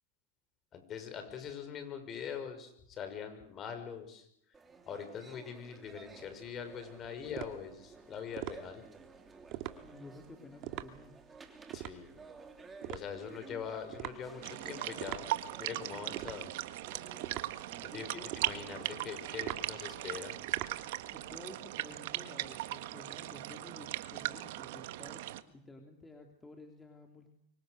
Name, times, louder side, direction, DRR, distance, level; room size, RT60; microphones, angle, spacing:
voice 1, 0.7-4.3 4.9-8.8 11.7-12.2 12.9-15.3 15.6-16.5 17.8-20.4, left 7 dB, 35° left, 8 dB, 6.0 m, -43 dB
sound 1, 4.5-19.8, right 4 dB, 15° right, 3.4 m, -55 dB
sound 2, 5.9-21.4, right 15 dB, 55° right, 2.2 m, -45 dB
voice 2, 9.8-11.1 17.9-18.3 21.1-27.3, left 2 dB, 15° left, 3 dB, 3.4 m, -52 dB
sound 3, 14.4-25.4, right 16 dB, 70° right, 1.6 m, -39 dB
28.0 x 24.5 x 6.7 m, 0.71 s
supercardioid pair, 125°, 0 cm